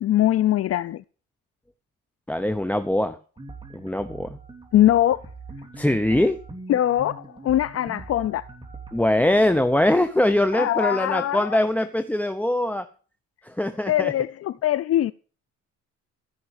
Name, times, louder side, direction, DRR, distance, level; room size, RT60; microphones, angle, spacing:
voice 1, 0.0-1.0 4.7-5.2 6.7-8.4 10.5-11.6 13.9-15.1, left 12 dB, 50° left, 0.5 m, -22 dB
voice 2, 2.3-3.2 3.7-4.4 5.8-6.4 8.9-12.9 13.4-14.1, left 1 dB, 5° left, 0.9 m, -22 dB
sound 1, 3.4-9.0, right 3 dB, 15° right, 3.0 m, -42 dB
15.5 x 5.9 x 8.9 m
cardioid pair, 120°, 32 cm